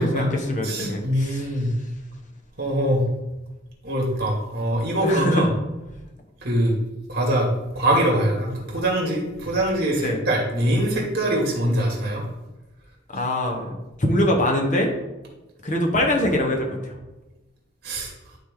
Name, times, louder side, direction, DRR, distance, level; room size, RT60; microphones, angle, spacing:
voice 1, 0.0-1.5 5.0-5.5 10.0-10.2 13.1-13.7 14.0-14.9 15.6-17.0, left 1 dB, 40° left, 1 dB, 1.3 m, -23 dB
voice 2, 0.6-1.7 2.6-3.0 3.8-5.5 6.4-6.7 7.1-12.2 17.8-18.1, right 1 dB, 55° right, -1 dB, 2.4 m, -23 dB
12.0 x 4.2 x 3.8 m, 1.0 s
head